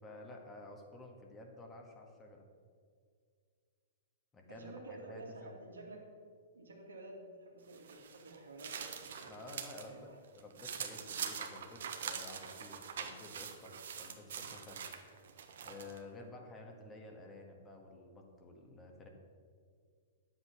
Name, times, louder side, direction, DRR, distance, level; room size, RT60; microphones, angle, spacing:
voice 1, 0.0-2.4 4.3-5.5 9.3-14.8 15.6-19.1, left 2 dB, 20° left, 2 dB, 1.7 m, -52 dB
voice 2, 4.5-6.1 6.5-9.2 9.8-10.2, right 2 dB, 85° right, 0 dB, 2.2 m, -51 dB
sound 1, 7.7-9.9 10.2-16.0, right 7 dB, 65° right, 1.1 m, -44 dB
9.9 x 7.9 x 5.9 m, 2.1 s
hypercardioid pair, 115°, 0 cm